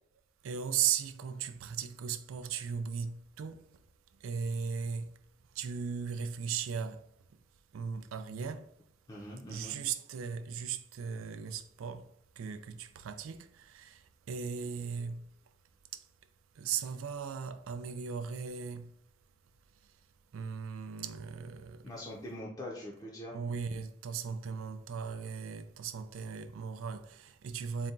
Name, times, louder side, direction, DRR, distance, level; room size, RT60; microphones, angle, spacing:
voice 1, 0.4-3.8 4.1-5.2 5.5-7.1 7.7-8.8 9.5-15.3 15.9-16.1 16.5-18.9 19.8-19.9 20.3-21.9 23.3-27.9, right 7 dB, 85° right, 0.4 m, -37 dB
voice 2, 9.1-9.8 21.8-23.4, left 1 dB, 20° left, 0.6 m, -43 dB
4.1 x 2.2 x 3.7 m
head